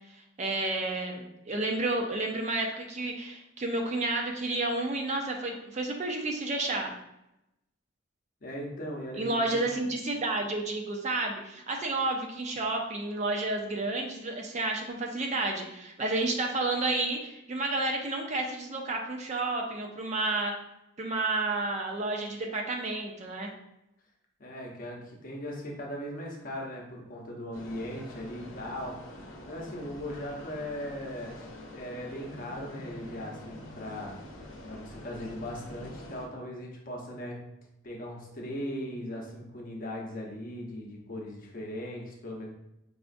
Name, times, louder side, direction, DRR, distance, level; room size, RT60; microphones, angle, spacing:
voice 1, 0.4-6.9 9.2-20.5 21.0-23.5, right 2 dB, 35° right, 2 dB, 0.5 m, -31 dB
voice 2, 8.4-9.6 24.4-29.2 29.5-31.5 31.7-34.1 34.7-37.4 37.8-42.5, equal, 45° left, -1 dB, 0.7 m, -38 dB
sound 1, 27.5-36.3, left 1 dB, 80° left, 0.7 m, -46 dB
4.8 x 2.4 x 2.5 m, 0.87 s
head